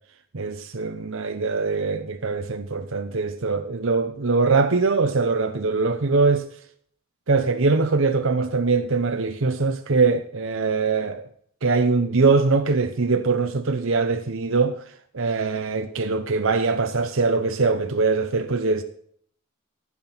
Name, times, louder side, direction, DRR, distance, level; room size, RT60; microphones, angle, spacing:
voice 1, 0.3-6.5 7.3-11.3 11.6-14.8 15.1-18.8, right 4 dB, 60° right, 0.8 m, -22 dB
14.5 x 6.0 x 5.9 m
head